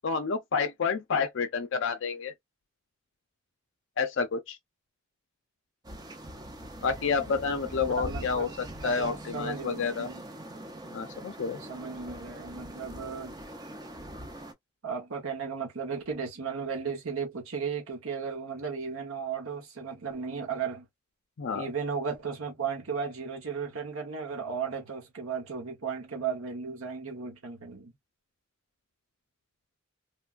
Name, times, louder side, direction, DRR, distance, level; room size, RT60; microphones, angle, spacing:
voice 1, 0.0-2.3 4.0-4.6 6.8-8.5 8.8-10.1 10.9-11.6 21.4-21.7, left 5 dB, 55° left, 0.4 m, -29 dB
sound 1, 5.8-14.5, right 1 dB, 20° right, 0.5 m, -42 dB
voice 2, 8.0-8.5 8.8-10.2 11.7-13.4 14.8-20.8 21.5-27.9, right 6 dB, 70° right, 0.9 m, -35 dB
3.1 x 2.2 x 2.4 m
head